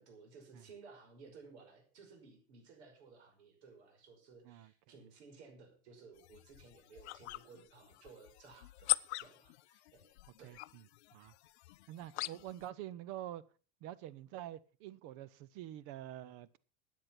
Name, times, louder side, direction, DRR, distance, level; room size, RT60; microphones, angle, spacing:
voice 1, 0.0-10.1 10.4-10.6 12.1-12.3, right 4 dB, 90° right, 5.6 m, -58 dB
sound 1, 6.2-12.7, left 19 dB, 85° left, 0.6 m, -42 dB
voice 2, 11.9-13.4 13.8-16.6, right 13 dB, 45° right, 0.7 m, -46 dB
13.0 x 9.5 x 5.9 m
supercardioid pair, 150°, 32 cm